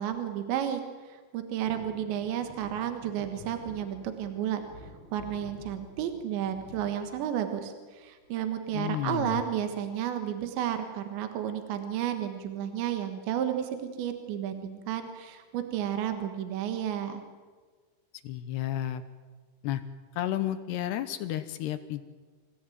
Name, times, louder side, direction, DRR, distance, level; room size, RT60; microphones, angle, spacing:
voice 1, 0.0-4.6 5.1-17.2, right 10 dB, 70° right, 7 dB, 3.5 m, -32 dB
sound 1, 1.6-7.8 8.2-8.9 10.1-10.6 10.8-10.9 11.2-11.5 12.3-13.2 13.7-13.8, equal, 50° right, 6.2 m, -50 dB
voice 2, 8.7-9.4 18.2-19.0 19.6-19.8 20.1-22.0, left 12 dB, 75° left, 11 dB, 2.6 m, -32 dB
27.0 x 16.5 x 9.2 m, 1.5 s
omnidirectional pair, 5.8 m